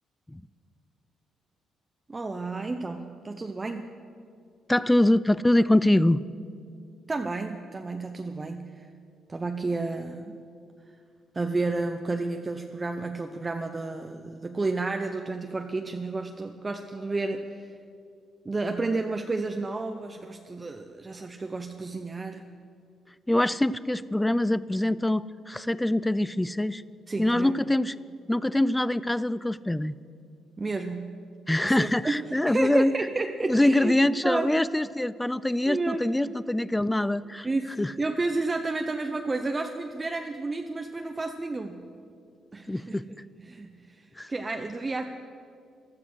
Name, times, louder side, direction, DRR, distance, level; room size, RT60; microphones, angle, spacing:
voice 1, 2.1-3.9 7.1-8.9 9.3-10.4 11.3-17.7 18.4-22.4 27.1-27.7 30.6-31.2 31.6-34.0 34.2-34.5 35.7-36.3 37.4-41.8 42.5-43.0 43.4-45.0, right 3 dB, 25° right, 5 dB, 0.7 m, -31 dB
voice 2, 4.7-6.2 23.3-26.8 27.2-27.9 28.3-30.0 31.5-32.9 33.5-37.5 37.8-37.9 42.7-43.0 44.2-44.3, left 1 dB, 10° left, 18 dB, 0.4 m, -24 dB
15.0 x 12.5 x 6.3 m, 2.3 s
cardioid pair, 90°, 0 cm